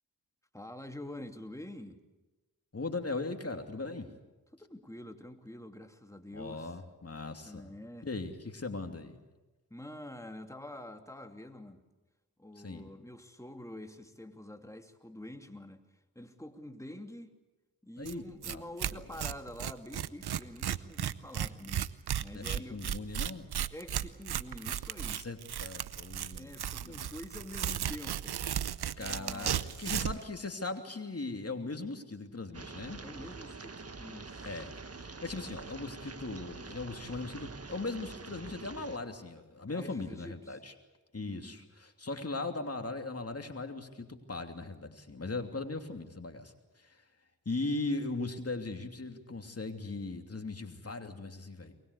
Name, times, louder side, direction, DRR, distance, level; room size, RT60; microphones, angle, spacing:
voice 1, 0.5-2.0 4.5-6.8 7.4-8.1 9.7-11.8 12.4-17.4 17.8-21.9 22.2-22.8 23.7-25.3 26.3-28.4 28.9-30.2 33.0-34.6 39.7-40.6 41.2-41.7, left 1 dB, 10° left, 5 dB, 2.7 m, -47 dB
voice 2, 2.7-4.1 6.3-7.7 8.0-9.2 12.6-12.9 18.0-18.6 22.3-23.5 25.1-26.5 26.8-27.1 29.0-33.0 34.4-34.7 35.0-40.7 41.1-47.0 47.4-51.7, left 3 dB, 40° left, 5 dB, 2.9 m, -39 dB
Tearing, 18.1-18.2 18.4-18.5 18.8-30.2, right 10 dB, 75° right, 0.8 m, -35 dB
sound 1, 32.5-39.0, right 4 dB, 40° right, 1.6 m, -46 dB
23.0 x 21.0 x 8.3 m, 1.1 s
cardioid pair, 45°, 39 cm